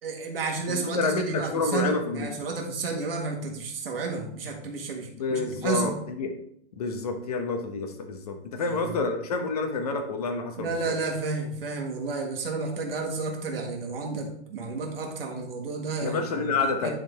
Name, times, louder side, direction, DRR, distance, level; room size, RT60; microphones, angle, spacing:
voice 1, 0.0-6.0 8.6-9.0 10.6-16.9, right 4 dB, 55° right, 1 dB, 1.7 m, -32 dB
voice 2, 0.7-2.3 5.1-6.3 6.8-10.9 16.0-16.9, left 4 dB, 35° left, 6 dB, 0.9 m, -28 dB
10.5 x 3.9 x 3.4 m, 0.68 s
hypercardioid pair, 175°, 34 cm